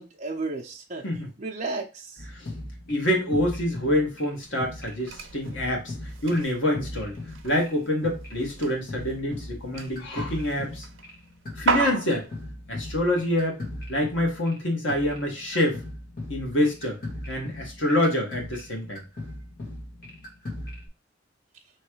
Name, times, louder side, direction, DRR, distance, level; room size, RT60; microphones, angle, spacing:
voice 1, 0.0-2.2, right 3 dB, 35° right, 0 dB, 0.6 m, -34 dB
sound 1, 2.2-20.9, left 1 dB, 50° left, 1.7 m, -39 dB
voice 2, 2.9-5.9 6.2-7.1 7.4-10.9 11.6-12.3 12.7-13.6 13.9-15.8 16.3-17.0 17.3-19.0, left 1 dB, 80° left, 0 dB, 1.6 m, -26 dB
sound 2, 4.4-12.4, right 5 dB, 85° right, 0.6 m, -35 dB
3.2 x 3.2 x 4.6 m, 0.30 s
head